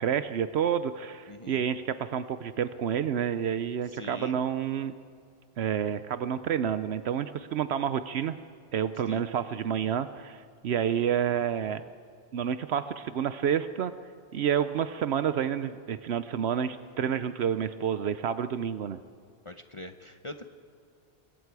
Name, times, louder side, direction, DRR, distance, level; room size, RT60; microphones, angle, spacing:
voice 1, 0.0-4.9 5.6-8.3 8.7-11.8 12.3-13.9 14.3-19.0, right 8 dB, 75° right, 12 dB, 0.9 m, -29 dB
voice 2, 1.3-1.6 3.9-4.4 9.1-9.2 19.4-20.4, left 1 dB, 30° left, 7 dB, 0.8 m, -43 dB
28.5 x 22.0 x 4.8 m, 2.4 s
omnidirectional pair, 1.1 m